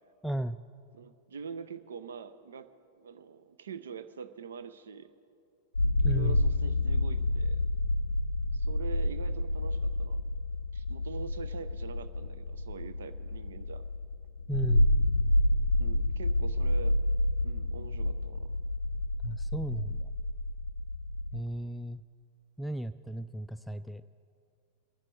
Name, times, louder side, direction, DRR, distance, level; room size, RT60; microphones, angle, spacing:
voice 1, 0.2-0.6 6.0-6.4 14.5-14.9 19.2-20.1 21.3-22.0 22.6-24.0, right 1 dB, ahead, 11 dB, 0.3 m, -35 dB
voice 2, 0.9-2.7 3.0-5.1 6.0-7.6 8.5-10.2 10.7-13.8 15.8-17.0 17.4-18.5, right 6 dB, 65° right, 12 dB, 0.6 m, -44 dB
sound 1, 5.7-21.4, left 1 dB, 80° left, 0.4 m, -29 dB
24.0 x 10.0 x 4.5 m, 2.5 s
figure-of-eight pair, 90°, 0 cm